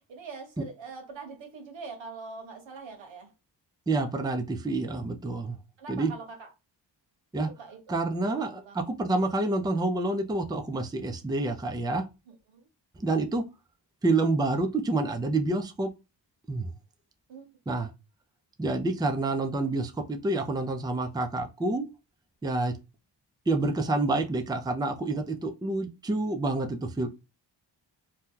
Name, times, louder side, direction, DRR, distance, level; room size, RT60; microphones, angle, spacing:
voice 1, 0.1-3.3 4.7-4.8 5.8-6.5 7.6-8.8 12.3-12.6 17.3-17.5, right 4 dB, 90° right, 1.1 m, -43 dB
voice 2, 3.9-5.6 5.9-6.1 7.3-7.5 7.9-12.0 13.0-13.4 14.0-15.9 16.5-16.7 17.7-17.9 18.6-21.9 22.4-22.7 23.5-27.1, right 2 dB, 10° right, 0.4 m, -28 dB
2.8 x 2.2 x 3.5 m
cardioid pair, 95°, 44 cm